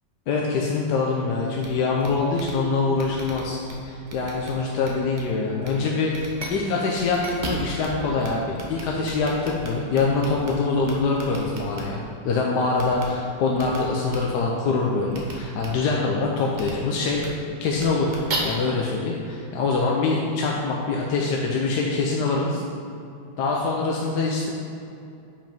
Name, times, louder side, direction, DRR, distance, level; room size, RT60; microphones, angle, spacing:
voice 1, 0.3-7.2 7.4-12.0 12.2-17.2 17.6-18.2 18.4-22.6 23.4-24.5, left 3 dB, 75° left, -2 dB, 1.2 m, -24 dB
sound 1, 1.6-1.7 2.0-2.1 2.3-2.5 2.9-3.7 4.1-4.5 4.8-5.2 5.6-5.7 6.1-6.5 6.9-7.9 8.2-8.3 8.5-10.5 10.8-11.8 12.7-13.0 13.5-13.8 14.1-14.2 15.1-15.3 15.6-15.7 16.5-16.7 17.1-17.3 17.7-18.4, right 3 dB, 40° right, 0.7 m, -35 dB
5.2 x 5.2 x 5.2 m, 2.6 s
omnidirectional pair, 1.9 m